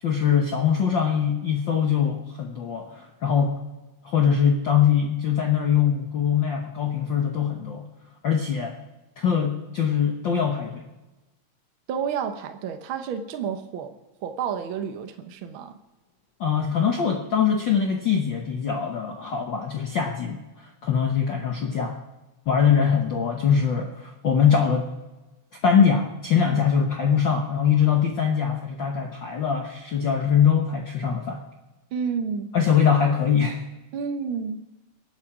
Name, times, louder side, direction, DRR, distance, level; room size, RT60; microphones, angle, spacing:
voice 1, 0.0-3.6 4.0-7.8 8.2-8.7 9.2-10.8 16.4-22.0 22.5-24.9 25.6-31.4 32.5-33.6, left 7 dB, 70° left, 2 dB, 1.1 m, -22 dB
voice 2, 11.9-13.9 14.2-15.8 26.5-26.6 31.9-32.5 33.9-34.6, right 6 dB, 75° right, 7 dB, 1.1 m, -30 dB
23.0 x 9.1 x 4.9 m, 1.1 s
omnidirectional pair, 3.7 m